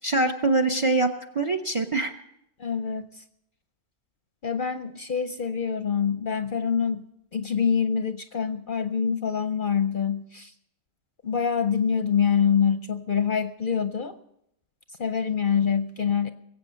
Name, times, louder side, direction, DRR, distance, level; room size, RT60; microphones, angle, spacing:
voice 1, 0.0-2.1, right 2 dB, 35° right, 7 dB, 0.6 m, -24 dB
voice 2, 2.6-3.2 4.4-7.0 7.3-10.5 11.2-14.2 15.0-16.3, left 7 dB, 50° left, 9 dB, 0.7 m, -25 dB
21.5 x 8.2 x 6.3 m, 0.79 s
omnidirectional pair, 1.4 m